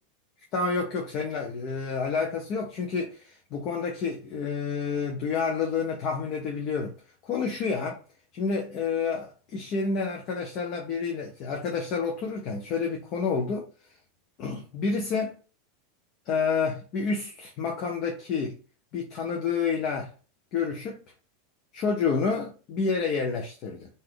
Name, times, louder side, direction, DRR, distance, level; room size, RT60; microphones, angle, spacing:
voice 1, 0.5-6.9 7.2-8.0 8.3-13.7 14.4-15.4 16.3-18.6 18.9-20.1 20.5-21.0 21.7-23.9, left 5 dB, 40° left, 0.9 m, -29 dB
4.0 x 2.7 x 4.8 m
supercardioid pair, 160°, 0 cm